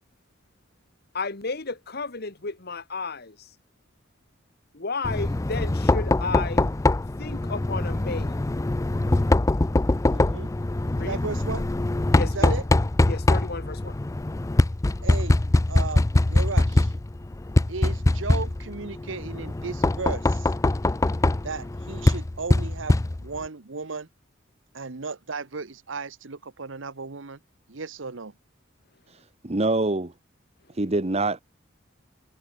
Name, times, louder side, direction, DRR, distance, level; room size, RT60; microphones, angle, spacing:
voice 1, 1.1-3.4 4.7-6.7 7.2-8.3 10.9-11.2 12.1-12.5 13.1-14.0, left 3 dB, 55° left, 1.8 m, -32 dB
Knock, 5.0-23.5, left 2 dB, 15° left, 0.4 m, -23 dB
voice 2, 10.0-10.5 10.9-11.7 12.2-12.6 15.0-15.4 15.7-16.9 17.7-20.5 21.4-24.1 24.7-27.4 27.7-28.3, right 4 dB, 80° right, 1.1 m, -35 dB
voice 3, 29.1-30.1 30.7-31.4, right 2 dB, 35° right, 1.2 m, -25 dB
head